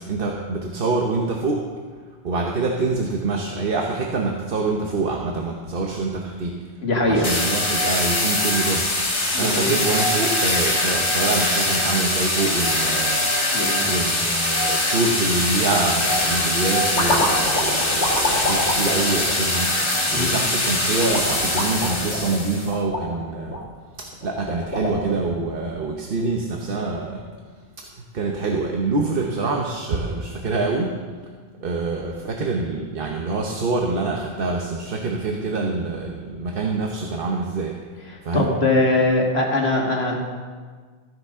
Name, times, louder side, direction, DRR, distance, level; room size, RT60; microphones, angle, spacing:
voice 1, 0.0-1.7 2.2-6.6 7.1-13.3 13.9-23.6 24.0-27.2 27.9-31.0 31.6-37.8 38.2-38.5, right 3 dB, 55° right, 0 dB, 1.1 m, -25 dB
voice 2, 6.8-7.3 9.3-9.7 13.5-14.0 20.1-20.3 38.1-40.2, left 2 dB, 65° left, 0 dB, 2.0 m, -21 dB
sound 1, 7.2-22.7, left 1 dB, 25° left, 1.4 m, -22 dB
sound 2, 15.6-15.9 16.5-20.1 20.9-23.6 24.2-25.5, left 1 dB, 80° left, 2.2 m, -27 dB
15.5 x 10.0 x 3.6 m, 1.5 s
omnidirectional pair, 1.2 m